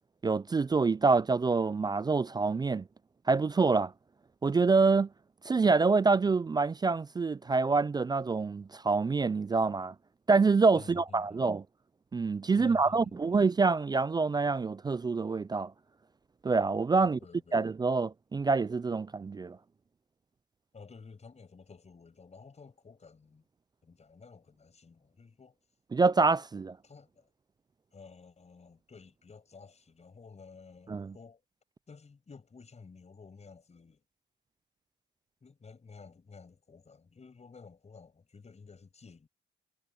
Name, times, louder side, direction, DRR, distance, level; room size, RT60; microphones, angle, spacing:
voice 1, 0.2-2.8 3.3-3.9 4.4-5.1 5.4-9.9 10.3-11.6 12.1-15.7 16.4-17.2 17.5-19.6 25.9-26.8 30.9-31.1, right 4 dB, 20° right, 0.4 m, -26 dB
voice 2, 10.7-11.4 12.6-13.4 17.0-17.6 20.7-23.4 23.8-25.6 26.8-27.3 27.9-31.4 31.9-34.0 35.4-39.3, left 5 dB, 35° left, 6.6 m, -53 dB
cardioid pair, 90°, 20 cm